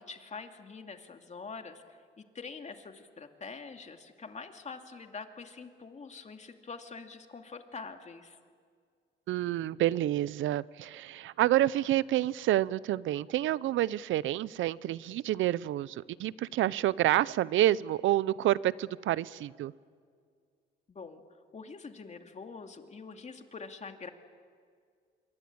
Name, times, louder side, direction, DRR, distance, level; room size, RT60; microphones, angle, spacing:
voice 1, 0.0-8.4 20.9-21.2 21.5-24.1, left 4 dB, 35° left, 5 dB, 2.5 m, -45 dB
voice 2, 9.3-19.7, right 14 dB, 80° right, 20 dB, 0.6 m, -28 dB
26.5 x 23.5 x 8.7 m, 2.1 s
cardioid pair, 90°, 20 cm